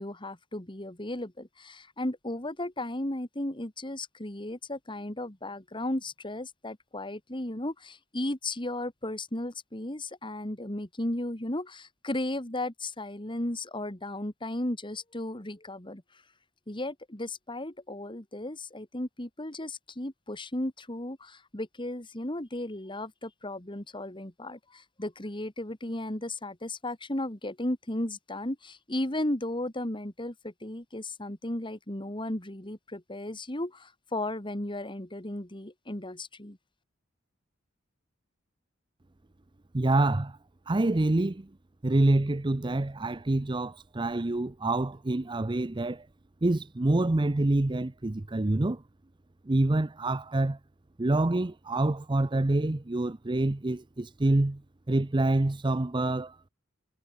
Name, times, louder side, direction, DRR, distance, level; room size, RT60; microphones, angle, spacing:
voice 1, 0.0-16.0 16.7-36.6, left 1 dB, 25° left, 2.6 m, -35 dB
voice 2, 39.7-40.4 40.7-41.5 41.8-46.1 46.4-48.8 49.5-50.6 51.0-54.6 54.9-56.4, right 2 dB, 25° right, 0.6 m, -26 dB
head